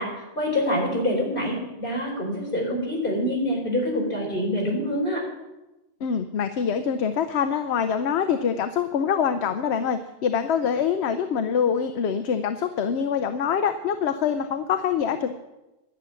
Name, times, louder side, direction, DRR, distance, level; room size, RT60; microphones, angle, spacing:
voice 1, 0.0-5.2, left 1 dB, 50° left, -2 dB, 4.5 m, -26 dB
voice 2, 6.0-15.3, left 7 dB, 70° left, 9 dB, 0.9 m, -25 dB
11.5 x 6.9 x 9.4 m, 1.0 s
omnidirectional pair, 1.2 m